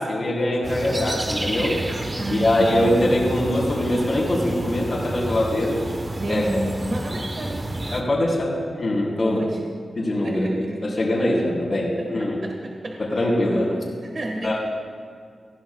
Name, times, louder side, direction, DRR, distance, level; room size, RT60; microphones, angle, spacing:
voice 1, 0.0-1.7 2.3-5.8 6.3-6.4 7.9-9.4 10.0-12.4 13.0-13.7 14.4-14.5, left 1 dB, 50° left, -4 dB, 3.9 m, -23 dB
sound 1, 0.6-8.0, right 1 dB, 25° right, 1.1 m, -30 dB
voice 2, 2.2-2.9 6.2-7.7 9.2-9.6 10.2-10.9 12.2-14.5, right 1 dB, 55° right, 0 dB, 1.5 m, -31 dB
20.5 x 15.5 x 2.3 m, 2.2 s
wide cardioid pair, 110°, 0 cm